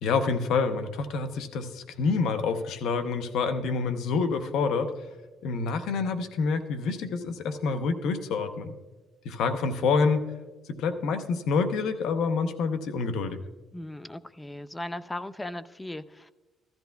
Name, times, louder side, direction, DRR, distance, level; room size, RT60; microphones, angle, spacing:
voice 1, 0.0-4.9 5.4-8.8 9.2-10.2 10.7-13.4, left 4 dB, 85° left, 8 dB, 0.8 m, -27 dB
voice 2, 13.7-16.3, left 1 dB, 15° left, 14 dB, 0.5 m, -37 dB
15.0 x 13.5 x 2.3 m, 1.2 s
cardioid pair, 90°, 0 cm